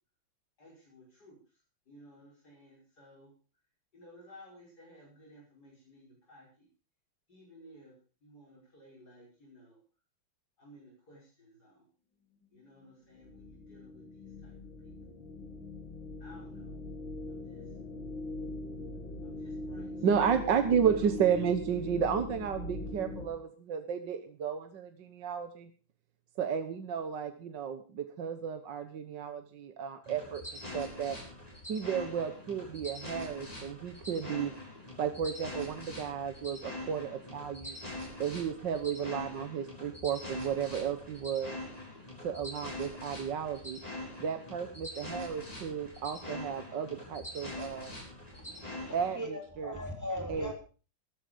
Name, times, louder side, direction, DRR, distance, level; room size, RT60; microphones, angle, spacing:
voice 1, 0.6-3.3 3.9-6.7 7.3-7.9 8.2-9.8 10.6-11.9 12.5-14.5 14.8-14.9 16.2-16.8 17.3-17.8 19.2-20.6 20.9-21.0, equal, 55° left, 6.3 m, -57 dB
sound 1, 13.1-23.3, left 2 dB, 80° left, 3.8 m, -41 dB
voice 2, 20.0-25.7 26.4-30.4 30.7-31.2 31.7-34.5 35.0-37.8 38.2-41.6 42.2-43.8 44.2-48.0 48.9-49.7 50.3-50.5, right 7 dB, 70° right, 1.8 m, -33 dB
sound 2, 30.0-49.2, left 1 dB, 20° left, 7.4 m, -44 dB
voice 3, 48.3-50.5, equal, 10° right, 3.6 m, -39 dB
14.0 x 13.0 x 5.2 m
omnidirectional pair, 2.1 m